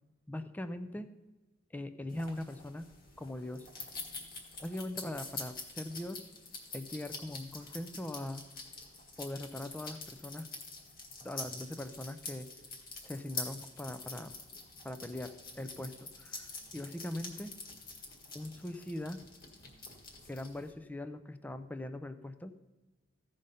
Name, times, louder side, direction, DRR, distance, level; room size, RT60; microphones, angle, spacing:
voice 1, 0.3-1.1 1.7-2.9 3.2-3.7 4.6-6.2 6.7-8.4 9.2-10.5 11.2-12.5 13.0-14.3 14.8-17.6 18.3-19.2 20.3-22.5, left 1 dB, 10° left, 10 dB, 0.4 m, -41 dB
sound 1, 2.1-20.7, left 3 dB, 45° left, 1.7 m, -46 dB
15.0 x 5.2 x 5.5 m, 1.2 s
head